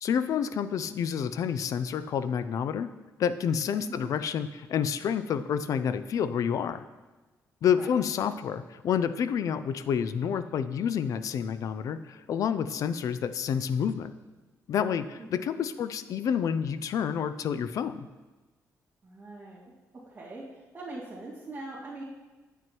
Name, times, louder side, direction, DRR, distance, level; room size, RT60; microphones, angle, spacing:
voice 1, 0.0-2.9 3.2-6.8 7.6-14.1 14.7-18.1, left 8 dB, 65° left, 13 dB, 0.4 m, -29 dB
voice 2, 15.3-15.6 19.0-19.7 20.1-22.0, right 2 dB, 30° right, -9 dB, 2.0 m, -42 dB
9.0 x 9.0 x 3.0 m, 1.2 s
cardioid pair, 115°, 6 cm